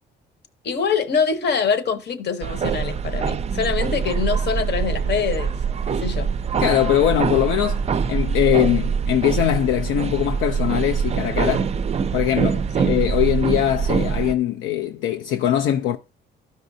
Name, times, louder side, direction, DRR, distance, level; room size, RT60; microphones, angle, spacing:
voice 1, 0.6-5.5 5.9-6.3 12.8-12.9, left 6 dB, 60° left, 1.0 m, -24 dB
sound 1, 2.4-14.4, right 6 dB, 35° right, 0.4 m, -24 dB
voice 2, 6.6-11.7 12.1-16.0, left 11 dB, 85° left, 0.5 m, -21 dB
12.5 x 5.2 x 2.6 m
cardioid pair, 90°, 20 cm